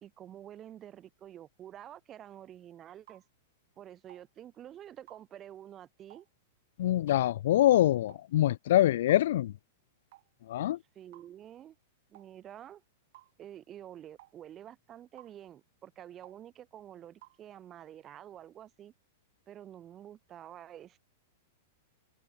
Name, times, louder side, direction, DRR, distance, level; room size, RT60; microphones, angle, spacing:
voice 1, 0.0-3.2 3.8-6.3 11.0-11.8 12.1-12.8 13.4-18.9 19.5-21.0, right 11 dB, 20° right, 2.0 m, -49 dB
sound 1, 3.1-3.3 4.1-4.3 5.1-5.3 6.1-6.3 7.1-7.3 8.1-8.3 9.1-9.3 10.1-10.3 11.1-11.3 12.1-12.3 13.1-13.3 14.2-14.4 15.2-15.4 16.2-16.4 17.2-17.4, right 17 dB, 55° right, 3.9 m, -56 dB
voice 2, 6.8-9.5 10.5-10.8, left 13 dB, 65° left, 0.3 m, -25 dB
supercardioid pair, 155°, 0 cm